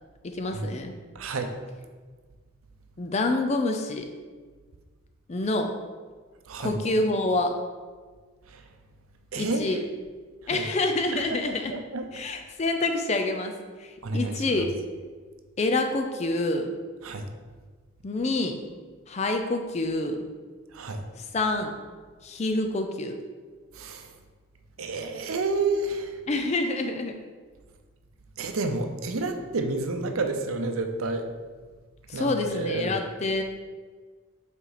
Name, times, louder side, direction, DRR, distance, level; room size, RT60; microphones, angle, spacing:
voice 1, 0.2-0.9 3.0-4.1 5.3-5.7 6.6-7.6 9.4-9.8 10.5-11.7 12.1-13.5 13.8-14.7 15.6-16.7 18.0-18.6 19.1-20.2 21.2-21.7 22.2-23.2 26.3-27.2 32.1-33.4, left 2 dB, 30° left, 5 dB, 0.4 m, -27 dB
voice 2, 1.1-1.5 6.5-6.8 8.5-8.6 9.3-9.8 10.5-10.7 11.1-11.2 11.7-12.1 14.0-14.4 17.0-17.3 20.7-21.1 23.7-24.1 24.8-26.2 28.4-31.3 32.1-32.9, right 3 dB, 85° right, 6 dB, 0.6 m, -30 dB
5.7 x 4.4 x 4.0 m, 1.5 s
head